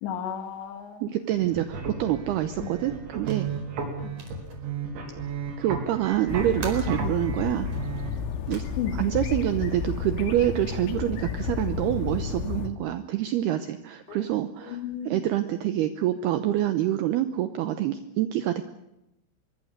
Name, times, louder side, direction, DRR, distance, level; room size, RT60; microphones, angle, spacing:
voice 1, 0.0-1.0 2.6-2.7 4.0-4.1 8.8-8.9 14.1-14.2 14.7-15.2, left 9 dB, 65° left, 8 dB, 3.8 m, -33 dB
voice 2, 1.0-3.5 5.6-7.7 8.5-8.6 8.9-18.6, right 12 dB, 80° right, 10 dB, 2.3 m, -26 dB
sound 1, 1.3-8.1, right 5 dB, 65° right, 6.0 m, -34 dB
sound 2, 3.1-8.6, right 3 dB, 35° right, 5.5 m, -48 dB
sound 3, 6.3-12.7, left 6 dB, 85° left, 4.4 m, -32 dB
24.5 x 23.0 x 6.7 m, 0.88 s
omnidirectional pair, 5.9 m